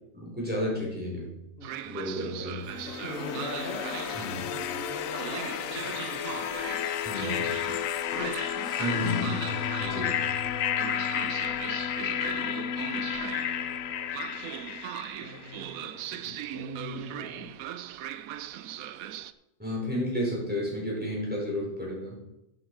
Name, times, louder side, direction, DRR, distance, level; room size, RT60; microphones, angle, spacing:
voice 1, 0.1-1.3 1.9-2.7 4.1-4.4 7.0-7.5 8.8-10.2 19.6-22.2, equal, 5° right, -4 dB, 4.7 m, -32 dB
Train, 1.6-19.3, right 11 dB, 75° right, 1.0 m, -40 dB
sound 1, 2.7-15.6, left 9 dB, 70° left, 1.0 m, -32 dB
voice 2, 3.0-6.7 8.1-8.3 15.2-17.5, left 1 dB, 45° left, -1 dB, 1.8 m, -41 dB
sound 2, 8.9-14.0, left 6 dB, 50° right, 3.9 m, -39 dB
10.5 x 8.9 x 4.8 m, 0.90 s
omnidirectional pair, 1.5 m